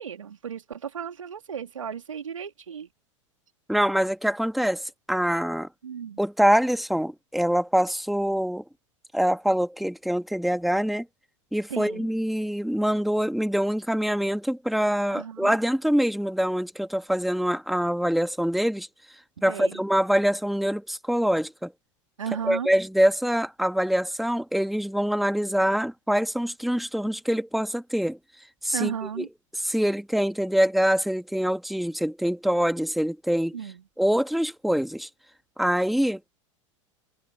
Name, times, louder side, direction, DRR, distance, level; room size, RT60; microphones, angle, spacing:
voice 1, 0.0-2.9 5.8-6.2 11.7-12.1 15.1-15.6 19.4-19.8 22.2-22.7 28.7-29.3 33.5-33.8, right 7 dB, 75° right, 3.3 m, -34 dB
voice 2, 3.7-5.7 6.2-8.6 9.1-11.1 11.5-18.9 19.4-21.7 22.5-28.2 28.6-28.9 29.2-29.3 29.6-33.6 34.0-35.1 35.6-36.2, equal, ahead, 2.0 m, -24 dB
figure-of-eight pair, 90°, 17 cm